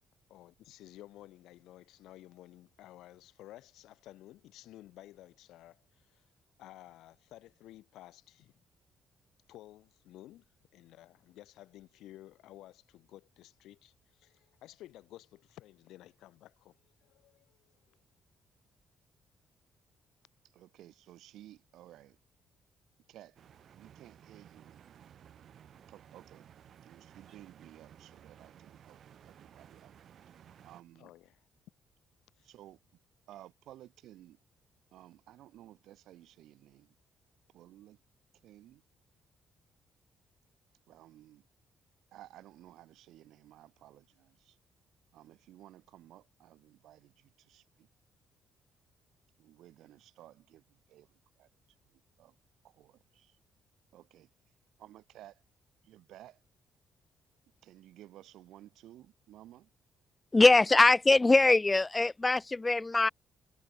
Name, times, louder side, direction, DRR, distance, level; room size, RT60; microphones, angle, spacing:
voice 1, 0.3-6.3 6.6-8.5 9.5-10.5 10.7-18.0 31.0-31.4 32.4-32.5, left 14 dB, 85° left, 4.8 m, -54 dB
voice 2, 20.5-22.2 23.1-23.4 23.7-24.7 25.9-26.5 26.8-29.9 30.2-30.3 30.6-31.1 32.4-32.8 33.3-34.4 34.9-36.9 37.5-38.0 38.4-38.8 40.9-41.5 42.1-44.6 45.1-47.9 49.4-51.5 51.8-52.4 52.6-53.4 53.9-54.3 54.8-55.4 55.8-56.4 57.6-59.7, right 13 dB, 85° right, 4.1 m, -55 dB
sound 1, 23.4-30.8, right 9 dB, 65° right, 2.5 m, -57 dB
voice 3, 60.3-63.1, left 3 dB, 20° left, 0.7 m, -22 dB
cardioid pair, 90°, 0 cm